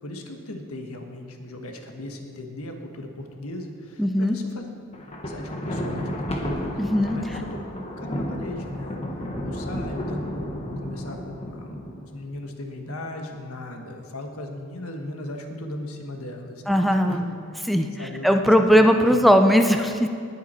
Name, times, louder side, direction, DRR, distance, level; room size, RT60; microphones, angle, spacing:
voice 1, 0.0-4.7 5.2-6.4 6.7-7.6 8.0-9.0 9.4-17.3 18.0-18.3 18.8-19.2, left 1 dB, 90° left, 3 dB, 1.4 m, -37 dB
voice 2, 4.0-4.4 6.8-7.2 16.7-17.3 17.6-17.9 18.2-20.1, equal, ahead, 5 dB, 0.5 m, -18 dB
Thunder, 4.9-12.2, equal, 30° left, 1.4 m, -32 dB
18.5 x 7.3 x 4.4 m, 2.3 s
head